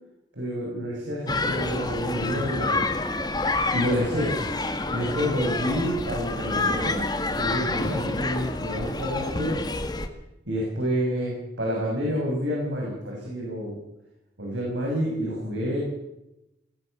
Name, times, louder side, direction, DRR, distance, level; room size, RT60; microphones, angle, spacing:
voice 1, 0.3-2.9 3.7-4.3 4.9-7.0 7.3-9.6 10.5-13.8 14.4-15.8, equal, 80° right, -3 dB, 7.4 m, -28 dB
sound 1, 1.3-10.1, left 2 dB, 20° left, 1.6 m, -28 dB
22.0 x 18.0 x 6.9 m, 0.89 s
head